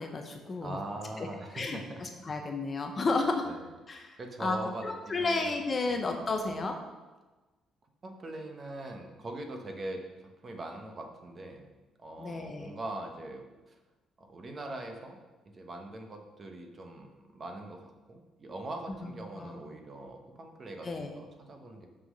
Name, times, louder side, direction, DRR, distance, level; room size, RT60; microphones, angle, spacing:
voice 1, 0.0-0.8 1.2-1.3 1.5-3.5 3.9-4.6 4.8-6.8 12.2-12.7 19.0-19.5 20.8-21.1, left 3 dB, 25° left, 4 dB, 0.7 m, -32 dB
voice 2, 0.6-2.0 3.4-3.7 4.2-5.6 5.9-6.2 8.0-11.7 12.0-13.8 14.2-15.2 15.5-21.9, right 2 dB, 25° right, 4 dB, 0.9 m, -42 dB
6.6 x 5.7 x 6.3 m, 1.2 s
cardioid pair, 175°, 0 cm